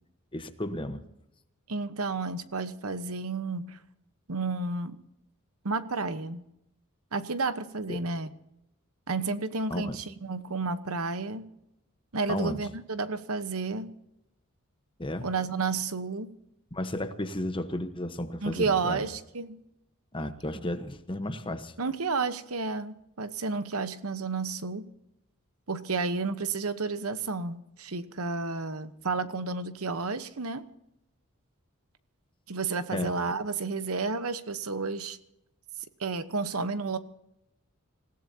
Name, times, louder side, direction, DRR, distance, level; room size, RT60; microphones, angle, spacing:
voice 1, 0.3-1.0 7.9-8.0 9.7-10.0 12.3-12.6 15.0-15.3 16.7-19.1 20.1-21.7 32.9-33.1, left 1 dB, 25° left, 9 dB, 1.1 m, -33 dB
voice 2, 1.7-3.8 4.3-5.0 5.6-6.4 7.1-8.3 9.1-11.5 12.1-13.9 15.2-16.3 18.4-19.6 21.8-24.9 25.7-30.7 32.5-35.2 36.0-37.0, right 4 dB, 75° right, 12 dB, 1.1 m, -31 dB
27.0 x 17.0 x 2.8 m, 0.84 s
head